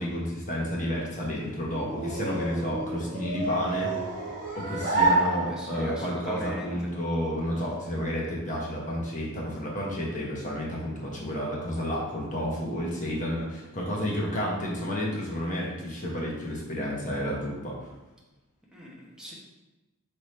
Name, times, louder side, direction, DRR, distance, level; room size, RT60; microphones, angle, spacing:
voice 1, 0.0-3.9 4.5-17.8, equal, 35° left, -3 dB, 1.1 m, -31 dB
sound 1, 1.0-6.0, right 2 dB, 40° right, 0.9 m, -29 dB
voice 2, 5.2-6.7 18.7-19.3, left 1 dB, 5° right, -5 dB, 0.9 m, -39 dB
3.5 x 3.2 x 4.2 m, 1.1 s
head